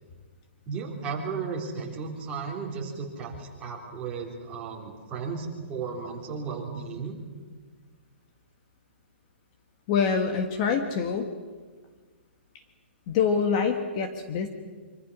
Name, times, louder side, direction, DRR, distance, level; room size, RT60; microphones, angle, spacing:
voice 1, 0.7-7.2, right 5 dB, 15° right, -2 dB, 3.6 m, -34 dB
voice 2, 9.9-11.3 13.1-14.5, left 6 dB, 30° left, 7 dB, 1.6 m, -25 dB
25.0 x 25.0 x 6.3 m, 1.5 s
hypercardioid pair, 170°, 6 cm